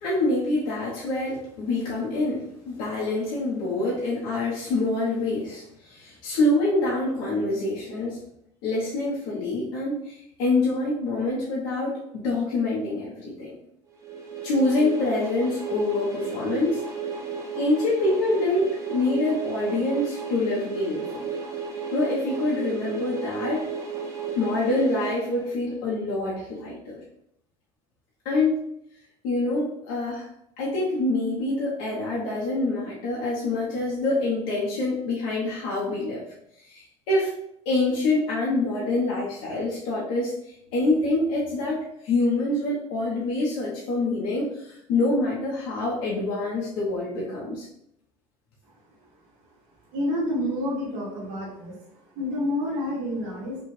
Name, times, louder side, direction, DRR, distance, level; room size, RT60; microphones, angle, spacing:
voice 1, 0.0-8.2 8.6-13.5 14.4-16.8 17.5-21.3 21.9-23.7 24.4-27.0 28.2-28.6 29.2-30.3 30.6-36.2 36.6-37.3 37.6-47.7, left 2 dB, 80° left, -6 dB, 1.1 m, -26 dB
sound 1, 14.0-25.8, right 5 dB, 25° right, 0.7 m, -33 dB
voice 2, 49.9-51.8 52.1-53.6, left 1 dB, 70° right, -5 dB, 1.7 m, -28 dB
5.5 x 2.4 x 3.3 m, 0.76 s
cardioid pair, 170°, 12 cm